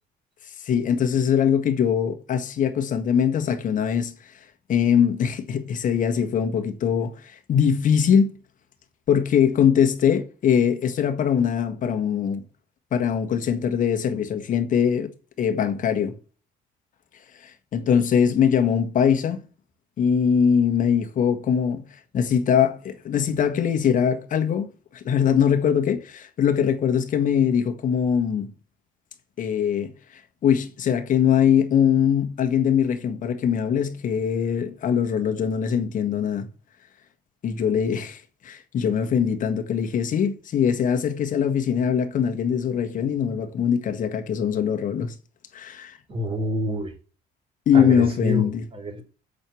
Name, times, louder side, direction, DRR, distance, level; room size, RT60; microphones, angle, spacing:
voice 1, 0.6-4.1 4.7-8.3 9.1-12.4 12.9-15.1 15.4-16.1 17.4-19.4 20.0-21.9 22.1-28.5 29.4-29.9 30.4-36.5 37.4-45.1 45.5-46.0 47.7-48.6, left 8 dB, 50° left, 1.5 m, -22 dB
voice 2, 46.1-46.9 47.7-49.0, left 1 dB, 35° right, 3.2 m, -27 dB
7.7 x 4.6 x 7.0 m
cardioid pair, 110°, 17 cm